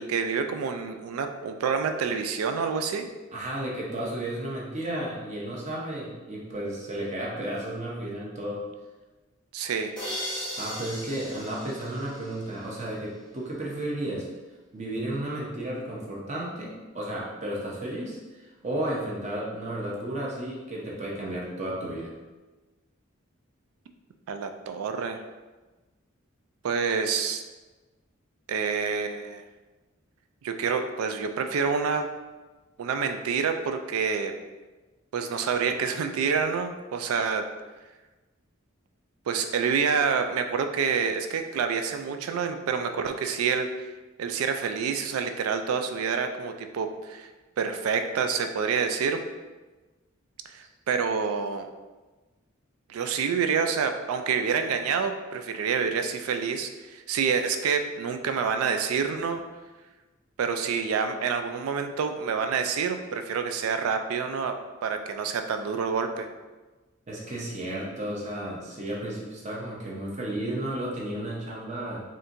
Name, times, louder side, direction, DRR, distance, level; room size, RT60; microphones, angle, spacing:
voice 1, 0.0-3.1 9.5-10.0 24.3-25.2 26.6-27.4 28.5-29.4 30.4-32.1 32.8-34.3 35.1-37.5 39.3-43.7 44.2-47.3 47.6-49.2 50.5-51.7 52.9-59.4 60.4-66.3, right 6 dB, 90° right, 7 dB, 0.3 m, -27 dB
voice 2, 3.3-8.6 10.3-14.3 14.7-22.1 67.1-72.0, right 1 dB, 35° right, -4 dB, 0.7 m, -33 dB
sound 1, 10.0-12.8, equal, 5° left, 0.8 m, -37 dB
4.3 x 2.5 x 2.6 m, 1.2 s
head